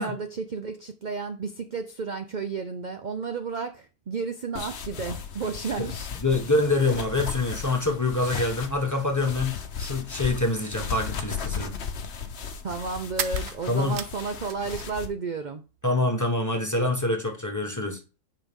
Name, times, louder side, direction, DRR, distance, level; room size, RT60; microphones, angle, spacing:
voice 1, 0.0-6.1 12.6-15.6, right 5 dB, 45° right, 0.6 m, -32 dB
sound 1, 4.6-15.1, left 6 dB, 55° left, 1.1 m, -35 dB
voice 2, 6.2-11.7 13.7-14.0 15.8-18.0, left 2 dB, 15° left, 1.2 m, -25 dB
sound 2, 13.2-15.1 15.3-16.2, right 9 dB, 70° right, 1.1 m, -36 dB
8.9 x 5.1 x 3.6 m
omnidirectional pair, 1.5 m